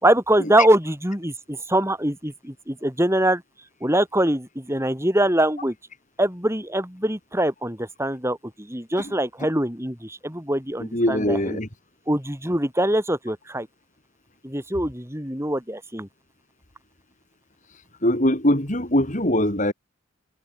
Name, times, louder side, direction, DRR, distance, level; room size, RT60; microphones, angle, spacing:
voice 1, 0.0-3.4 3.8-5.7 6.2-11.6 12.1-13.7 14.4-16.1, right 1 dB, 15° right, 6.3 m, -23 dB
voice 2, 10.9-11.7 18.0-19.7, left 1 dB, 35° left, 5.0 m, -21 dB
head